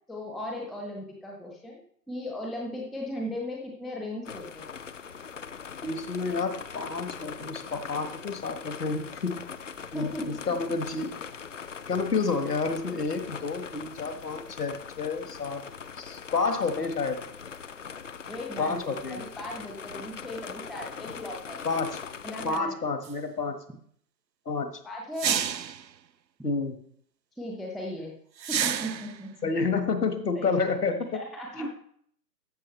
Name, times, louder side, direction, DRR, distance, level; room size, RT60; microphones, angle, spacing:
voice 1, 0.1-1.8 2.1-4.7 9.9-10.6 18.3-21.9 22.2-22.8 24.8-25.4 27.4-28.1 28.5-29.5 30.3-30.6 31.1-31.7, left 1 dB, ahead, -1 dB, 0.4 m, -37 dB
sound 1, 4.2-22.6, left 6 dB, 50° left, 0.5 m, -41 dB
voice 2, 5.8-9.3 9.9-11.1 11.9-15.7 16.0-17.2 18.6-19.3 21.6-22.0 22.4-23.6 24.4-24.8 26.4-26.8 29.4-31.2 31.5-31.7, left 4 dB, 65° left, 8 dB, 1.6 m, -29 dB
sound 2, 23.0-23.1 25.2-25.8 28.4-29.2, right 8 dB, 80° right, 0.7 m, -29 dB
14.0 x 6.8 x 3.2 m, 0.62 s
figure-of-eight pair, 140°, 50 cm